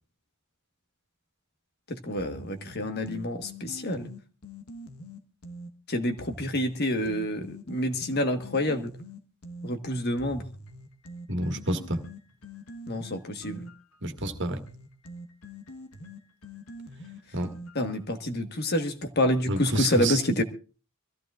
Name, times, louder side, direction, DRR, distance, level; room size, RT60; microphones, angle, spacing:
voice 1, 1.9-4.1 5.9-8.9 9.6-10.5 12.9-13.6 17.7-20.4, left 1 dB, 45° left, 1.4 m, -28 dB
sound 1, 2.2-5.7 6.2-9.7 10.2-18.0, left 1 dB, 75° left, 1.3 m, -44 dB
voice 2, 11.3-12.0 14.0-14.6 17.3-17.5 19.5-20.2, right 1 dB, 55° right, 1.8 m, -29 dB
25.0 x 15.0 x 2.5 m
head